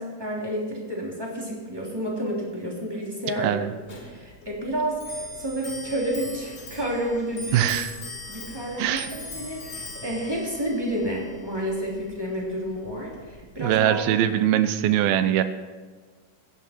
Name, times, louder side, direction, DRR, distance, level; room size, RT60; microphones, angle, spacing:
voice 1, 0.0-3.6 3.9-7.7 8.3-14.1, right 1 dB, 5° right, -3 dB, 2.5 m, -30 dB
Clock, 3.9-13.7, left 2 dB, 35° left, 3.5 m, -41 dB
voice 2, 7.5-7.9 8.8-9.1 13.6-15.4, right 11 dB, 80° right, 11 dB, 2.3 m, -22 dB
16.5 x 11.5 x 4.5 m, 1.4 s
omnidirectional pair, 4.6 m